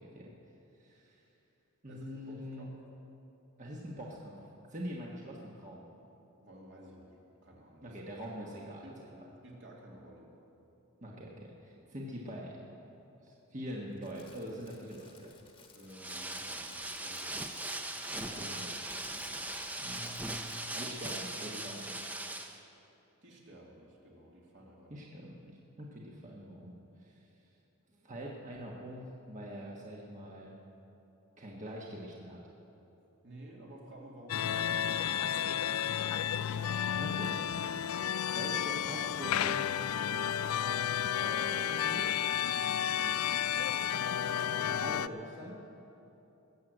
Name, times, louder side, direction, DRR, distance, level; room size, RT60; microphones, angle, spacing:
voice 1, 0.8-1.2 1.8-2.7 3.6-4.4 4.7-5.8 7.8-8.8 11.0-12.6 13.2-15.3 18.2-18.8 19.8-21.9 24.9-26.8 27.1-27.2 28.0-30.5 31.4-32.4 37.0-37.6 38.1-39.9 41.2-42.1 44.2-45.6, equal, 35° right, -2 dB, 1.4 m, -44 dB
voice 2, 1.9-2.8 6.4-8.0 8.4-9.0 9.4-10.3 15.7-17.5 23.2-25.1 33.2-36.4 42.9-43.2, right 1 dB, 55° right, -2 dB, 2.8 m, -53 dB
Crackle, 13.9-21.1, left 4 dB, 25° left, 1.3 m, -58 dB
sound 1, 15.9-22.6, right 1 dB, 5° right, 0.6 m, -40 dB
sound 2, 34.3-45.1, left 9 dB, 85° left, 0.4 m, -32 dB
20.5 x 7.7 x 8.0 m, 2.9 s
head